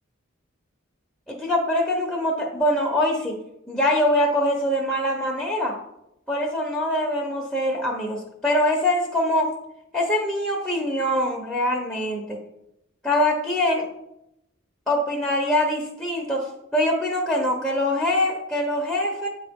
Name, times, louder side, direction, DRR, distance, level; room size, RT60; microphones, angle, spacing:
voice 1, 1.3-3.4 3.7-5.8 6.3-9.5 9.9-12.4 13.0-13.9 14.9-19.3, left 1 dB, ahead, -2 dB, 0.8 m, -23 dB
8.4 x 3.8 x 3.6 m, 0.85 s
head